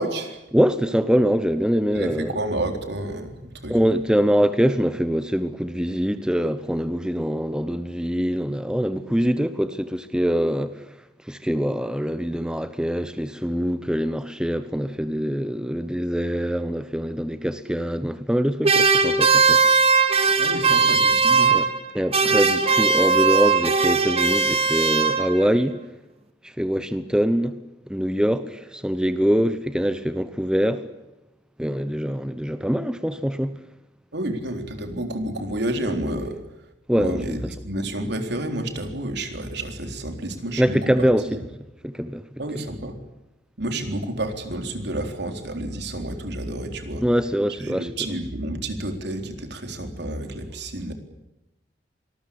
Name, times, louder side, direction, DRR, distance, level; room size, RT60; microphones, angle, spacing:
voice 1, 0.0-0.4 1.9-4.0 20.4-21.6 34.1-36.4 36.9-41.4 42.4-43.0 43.6-47.0 47.6-50.9, right 1 dB, 65° right, 3.9 m, -30 dB
voice 2, 0.5-2.3 3.7-10.8 11.2-19.6 21.5-21.7 21.9-25.8 26.4-27.6 27.9-30.9 31.6-33.5 36.9-37.4 40.6-41.3 41.8-42.3 47.0-47.9, equal, 5° right, 1.1 m, -23 dB
sound 1, 18.6-21.9 22.1-25.5, right 4 dB, 35° right, 2.6 m, -19 dB
25.5 x 20.5 x 8.7 m
head